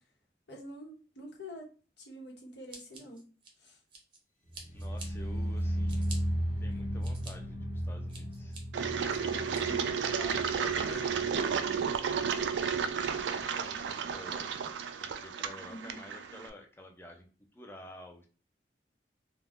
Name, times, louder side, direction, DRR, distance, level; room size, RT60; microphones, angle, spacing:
voice 1, 0.5-1.7 2.0-3.2 3.6-3.8 9.7-10.0 15.7-16.0, equal, 80° left, -1 dB, 0.9 m, -46 dB
Scissors, 2.7-4.2 4.5-5.1 5.6-6.2 6.7-7.3 7.8-8.6 9.1-9.6, right 3 dB, 30° right, 0.6 m, -48 dB
sound 1, 4.5-11.6 11.9-12.3 12.7-12.8, equal, 40° left, 1.0 m, -35 dB
voice 2, 4.7-6.1 6.6-8.6 9.1-9.7 10.1-12.4 13.3-14.7 15.0-18.3, left 1 dB, 15° left, 2 dB, 0.4 m, -50 dB
Engine, 8.7-16.5, right 6 dB, 85° right, 0.3 m, -32 dB
2.3 x 2.0 x 3.4 m, 0.38 s
head